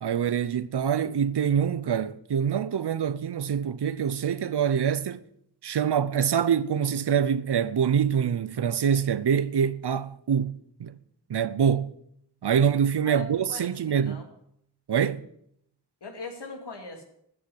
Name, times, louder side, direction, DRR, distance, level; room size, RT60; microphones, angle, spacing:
voice 1, 0.0-5.2 5.6-11.0 11.3-11.9 12.4-14.2 14.9-15.3, right 8 dB, 80° right, 0.7 m, -25 dB
voice 2, 13.0-14.2 16.0-17.0, left 4 dB, 90° left, 2.4 m, -40 dB
13.5 x 6.8 x 9.2 m
cardioid pair, 50°, 40 cm